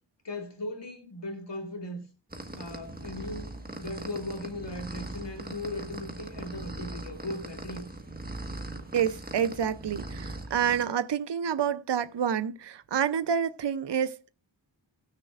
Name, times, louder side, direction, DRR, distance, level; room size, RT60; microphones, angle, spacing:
voice 1, 0.2-2.0 2.6-3.5 3.8-7.9, left 1 dB, 65° left, 1.8 m, -38 dB
sound 1, 2.3-10.9, right 2 dB, 20° right, 1.5 m, -40 dB
voice 2, 8.9-14.3, right 8 dB, 65° right, 0.7 m, -28 dB
18.0 x 6.7 x 2.4 m
wide cardioid pair, 50°, 45 cm